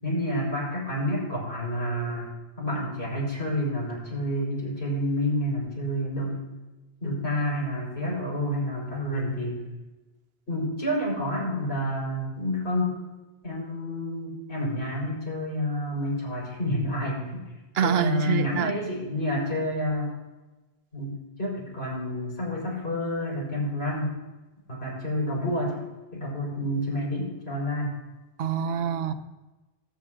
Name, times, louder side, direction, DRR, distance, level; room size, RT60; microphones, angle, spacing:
voice 1, 0.0-2.3 2.6-6.4 7.0-9.6 10.5-13.0 13.4-17.4 17.8-20.1 20.9-24.2 24.7-25.8 26.1-28.0 29.1-29.2, left 1 dB, 85° left, -5 dB, 4.8 m, -29 dB
voice 2, 17.7-18.7 28.4-29.1, right 8 dB, 75° right, 11 dB, 0.9 m, -25 dB
19.0 x 8.7 x 2.5 m, 1.1 s
omnidirectional pair, 1.0 m